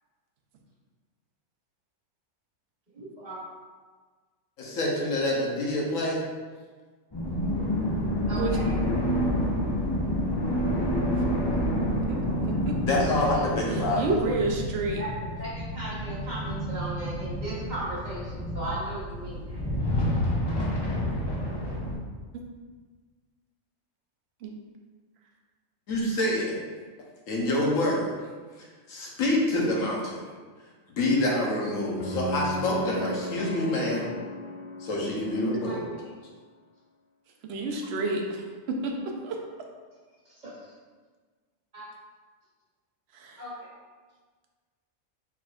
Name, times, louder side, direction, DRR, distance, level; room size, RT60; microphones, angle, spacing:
voice 1, 2.9-3.4 8.3-8.8 13.9-15.1 15.4-19.6 35.7-36.0 40.2-40.6 41.7-41.8 43.4-43.7, right 1 dB, 35° right, -8 dB, 1.2 m, -37 dB
voice 2, 4.6-6.2 12.9-14.0 25.9-26.6 27.3-28.1 28.6-30.2 30.9-34.1 34.8-35.8, left 1 dB, 80° left, -3 dB, 1.3 m, -27 dB
sound 1, 7.1-21.9, equal, 35° left, 0.4 m, -29 dB
voice 3, 12.0-12.8 13.7-15.0 22.3-22.4 24.4-24.5 37.5-39.4 43.1-43.4, right 3 dB, 60° right, 1 dB, 0.8 m, -30 dB
sound 2, 32.0-36.1, left 1 dB, 60° left, 1.0 m, -35 dB
4.4 x 4.3 x 2.4 m, 1.5 s
omnidirectional pair, 1.4 m